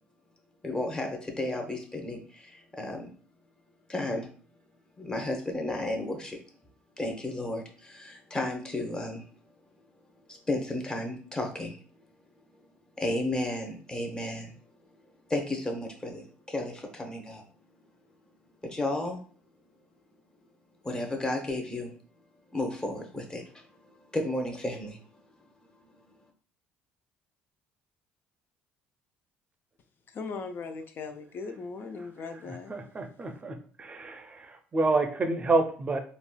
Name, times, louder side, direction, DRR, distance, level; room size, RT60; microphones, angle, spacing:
voice 1, 0.6-3.1 3.9-4.3 5.0-6.4 7.0-9.3 10.3-11.8 13.0-14.6 15.3-17.4 18.6-19.2 20.8-21.9 22.5-23.6 24.1-25.0 25.8-25.9, left 1 dB, 20° left, 0.9 m, -33 dB
voice 2, 30.1-32.7, left 4 dB, 50° left, 0.5 m, -38 dB
voice 3, 32.5-36.0, right 3 dB, 30° right, 0.6 m, -29 dB
3.8 x 2.3 x 2.2 m
supercardioid pair, 70°, 4 cm